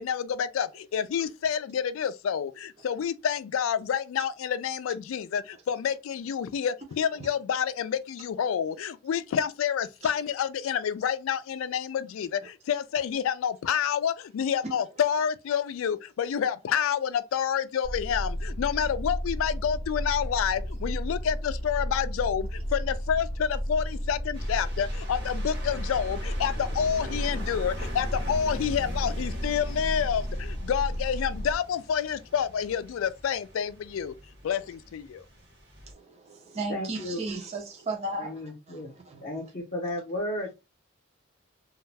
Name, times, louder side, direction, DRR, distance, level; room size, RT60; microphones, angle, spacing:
voice 1, 0.0-34.1 34.4-35.2, left 8 dB, 75° left, 0.3 m, -28 dB
sound 1, 17.8-31.5, equal, 75° right, 1.1 m, -33 dB
sound 2, 24.3-35.9, equal, 50° right, 0.9 m, -43 dB
voice 2, 35.9-39.2, right 2 dB, 30° right, 0.6 m, -35 dB
voice 3, 36.7-37.3 38.2-38.9 39.2-40.5, left 1 dB, 40° left, 0.7 m, -34 dB
2.3 x 2.1 x 3.3 m
head